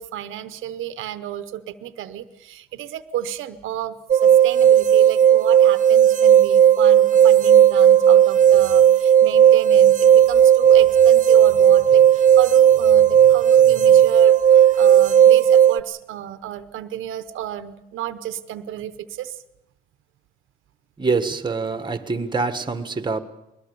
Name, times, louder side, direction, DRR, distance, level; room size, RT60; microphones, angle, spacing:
voice 1, 0.0-4.0 4.2-19.4, right 11 dB, 85° right, 0.9 m, -32 dB
sound 1, 4.1-15.8, right 9 dB, 40° right, 0.7 m, -14 dB
voice 2, 21.0-23.2, right 4 dB, 20° right, 1.5 m, -25 dB
21.5 x 19.5 x 6.9 m
cardioid pair, 90°, 20 cm